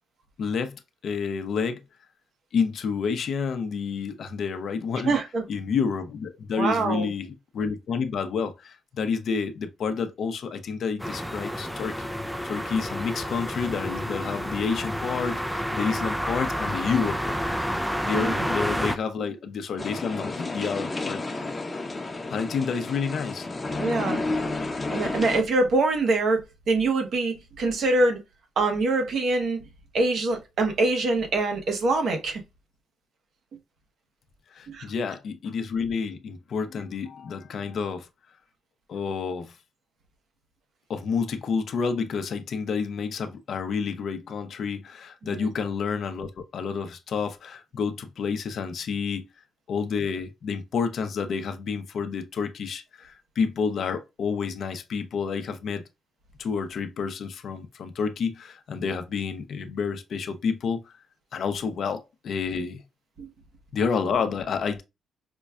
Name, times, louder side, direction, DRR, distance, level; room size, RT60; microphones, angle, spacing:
voice 1, 0.4-1.8 2.5-5.1 5.5-12.1 12.4-17.4 18.0-21.6 22.3-23.5 34.5-38.1 38.9-39.6 40.9-49.2 49.7-55.8 56.4-60.9 61.3-62.8 63.7-64.8, left 5 dB, 60° left, 0.6 m, -29 dB
voice 2, 5.0-5.4 6.6-7.1 18.2-18.4 23.8-24.2 24.9-28.2 28.6-29.6 29.9-32.4 34.7-34.8 45.2-45.5 63.2-63.3, right 2 dB, 60° right, 1.0 m, -24 dB
sound 1, 11.0-19.0, equal, ahead, 0.3 m, -29 dB
sound 2, 19.8-25.4, left 2 dB, 20° left, 0.7 m, -31 dB
5.1 x 2.2 x 2.3 m
cardioid pair, 90°, 0 cm